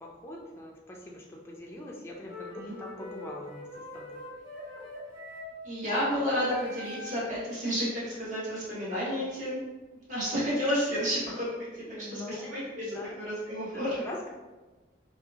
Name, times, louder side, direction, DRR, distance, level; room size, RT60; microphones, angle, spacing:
voice 1, 0.0-3.7 3.9-4.2 11.9-13.2 13.6-14.3, left 1 dB, 15° left, -2 dB, 0.3 m, -43 dB
sound 1, 2.3-7.4, left 1 dB, 25° right, 1.4 m, -43 dB
voice 2, 5.6-9.6 10.1-11.4 11.7-14.0, equal, 45° right, -9 dB, 1.1 m, -31 dB
2.8 x 2.4 x 2.3 m, 1.2 s
head